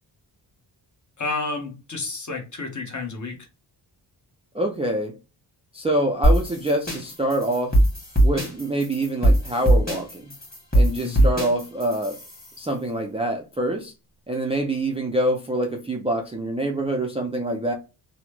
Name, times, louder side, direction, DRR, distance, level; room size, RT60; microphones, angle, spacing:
voice 1, 1.2-3.4 11.0-11.3, left 3 dB, 45° left, 1.0 m, -30 dB
voice 2, 4.5-5.1 5.7-7.8 8.2-10.3 10.7-12.2 12.6-13.9 14.3-17.7, right 1 dB, 15° right, 0.3 m, -25 dB
sound 1, 6.2-12.6, right 1 dB, 20° left, 1.5 m, -21 dB
3.0 x 2.1 x 3.2 m
wide cardioid pair, 110°, 42 cm